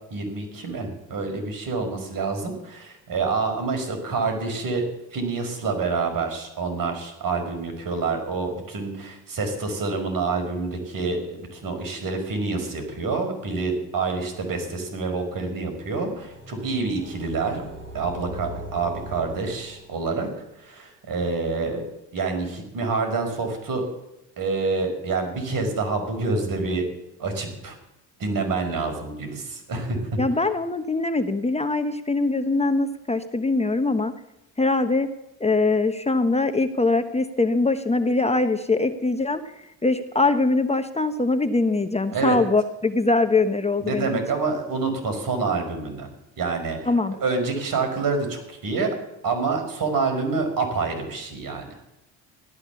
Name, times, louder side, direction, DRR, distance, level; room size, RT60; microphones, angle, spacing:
voice 1, 0.1-4.8 5.1-17.6 17.9-20.3 20.6-21.8 22.1-23.9 24.4-26.9 27.2-27.7 28.2-30.2 42.1-42.4 43.8-46.1 46.4-46.9 47.2-48.9 49.2-51.8, right 4 dB, 60° right, 6 dB, 5.0 m, -27 dB
sound 1, 15.8-20.4, right 1 dB, 30° right, 4.9 m, -41 dB
voice 2, 30.2-34.1 34.6-35.1 35.4-39.4 39.8-44.2 46.9-47.1, left 3 dB, 15° left, 8 dB, 1.0 m, -22 dB
16.0 x 12.5 x 7.0 m, 0.89 s
supercardioid pair, 80°, 38 cm